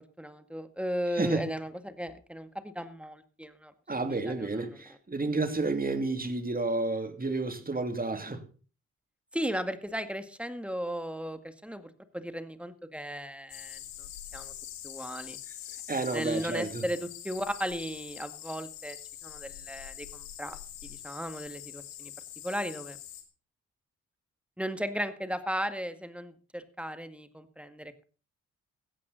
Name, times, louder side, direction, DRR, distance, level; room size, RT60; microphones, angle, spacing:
voice 1, 0.2-3.7 4.1-4.5 9.3-14.1 14.3-14.5 14.8-15.4 16.1-19.0 19.2-22.1 22.4-23.0 24.6-27.9, equal, 5° right, 2.0 m, -36 dB
voice 2, 1.1-1.4 3.9-8.4 15.9-16.8, right 3 dB, 25° right, 2.8 m, -31 dB
sound 1, 13.5-23.2, left 12 dB, 85° left, 1.9 m, -44 dB
15.5 x 13.0 x 4.1 m
hypercardioid pair, 40°, 36 cm